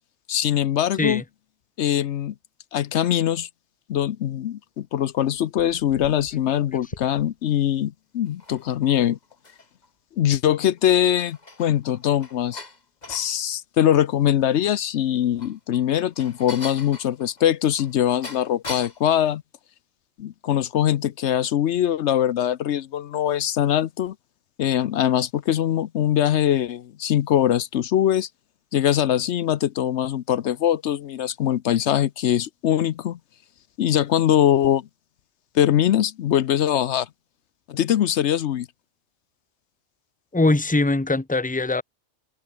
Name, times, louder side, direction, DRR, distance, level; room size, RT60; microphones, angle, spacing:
voice 1, 0.3-1.2 1.8-2.3 2.7-3.5 3.9-9.2 10.2-12.6 13.1-19.4 20.2-24.1 24.6-28.3 28.7-33.2 33.8-34.9 35.5-37.1 37.7-38.7, left 10 dB, 75° left, 1.0 m, -22 dB
sound 1, 5.3-7.5 8.2-9.9 10.3-10.4 10.8-13.3 15.1-19.1, left 2 dB, 35° left, 2.5 m, -41 dB
voice 2, 40.3-41.8, left 2 dB, 10° left, 1.0 m, -21 dB
omnidirectional pair, 1.2 m